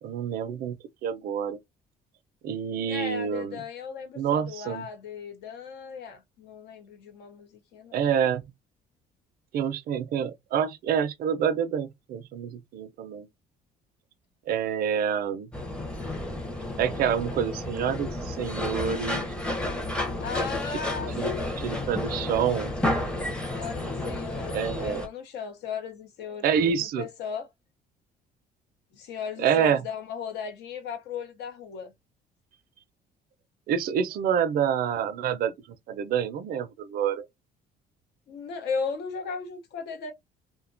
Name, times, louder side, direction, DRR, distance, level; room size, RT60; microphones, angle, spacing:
voice 1, 0.0-1.6 2.4-3.6 4.2-4.8 7.9-8.4 9.5-13.3 14.5-15.5 16.8-19.3 20.7-20.8 21.2-21.3 21.6-22.7 24.5-25.0 26.4-27.1 29.4-29.8 33.7-35.5 35.9-37.3, right 8 dB, 60° right, 0.4 m, -27 dB
voice 2, 2.8-8.0 20.2-22.1 23.5-27.5 28.9-31.9 38.3-40.1, left 6 dB, 80° left, 0.8 m, -37 dB
sound 1, 15.5-25.1, left 1 dB, 5° left, 0.6 m, -31 dB
2.7 x 2.1 x 2.5 m
cardioid pair, 110°, 17 cm